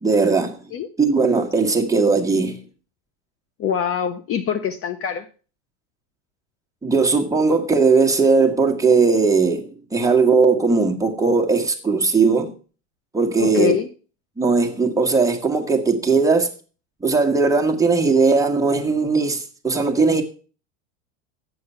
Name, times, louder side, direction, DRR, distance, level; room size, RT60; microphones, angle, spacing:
voice 1, 0.0-0.6 1.0-2.6 6.8-12.5 13.1-13.7 14.4-16.5 17.0-20.2, right 4 dB, 10° right, 1.4 m, -18 dB
voice 2, 3.6-5.3 13.4-13.9, left 8 dB, 35° left, 0.7 m, -23 dB
7.9 x 6.8 x 5.5 m
supercardioid pair, 105°, 39 cm